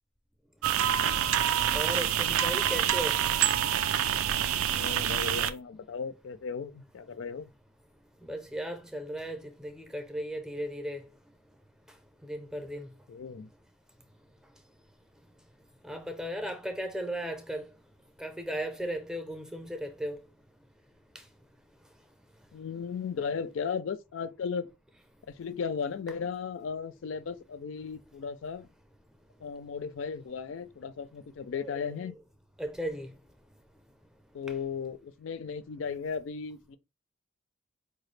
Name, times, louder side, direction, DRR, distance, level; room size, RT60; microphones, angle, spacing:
sound 1, 0.6-5.5, right 10 dB, 85° right, 0.4 m, -27 dB
voice 1, 1.7-3.2 8.2-11.0 12.3-12.9 15.8-17.7 18.2-20.2 31.5-31.9 32.6-33.1, equal, 5° right, 0.5 m, -36 dB
voice 2, 4.7-7.5 13.1-13.5 22.5-24.7 25.3-28.7 29.4-32.1 34.3-36.8, left 6 dB, 65° left, 0.4 m, -36 dB
4.7 x 2.3 x 3.2 m
head